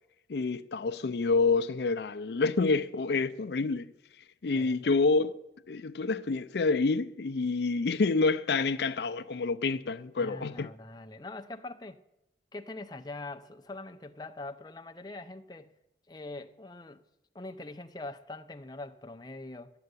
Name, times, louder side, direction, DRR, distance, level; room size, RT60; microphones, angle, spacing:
voice 1, 0.3-3.9 4.4-5.4 5.7-10.7, left 3 dB, 70° left, 0.5 m, -28 dB
voice 2, 10.2-12.0 12.5-15.7 16.1-17.0 17.3-19.7, left 2 dB, 25° left, 0.6 m, -43 dB
12.0 x 7.7 x 9.6 m
head